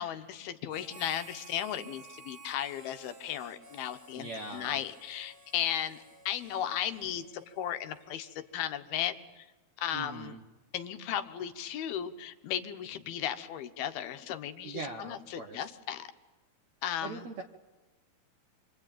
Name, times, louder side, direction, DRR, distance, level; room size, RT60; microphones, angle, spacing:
voice 1, 0.0-9.5 9.8-10.4 10.7-16.1 16.8-17.3, left 10 dB, 75° left, 8 dB, 2.8 m, -36 dB
Harmonica, 0.7-8.4, right 3 dB, 25° right, 4.2 m, -54 dB
voice 2, 4.2-4.8 9.9-10.4 14.6-15.6 17.0-17.4, right 3 dB, 65° right, 3 dB, 1.9 m, -41 dB
27.0 x 24.0 x 8.9 m, 1.2 s
omnidirectional pair, 4.7 m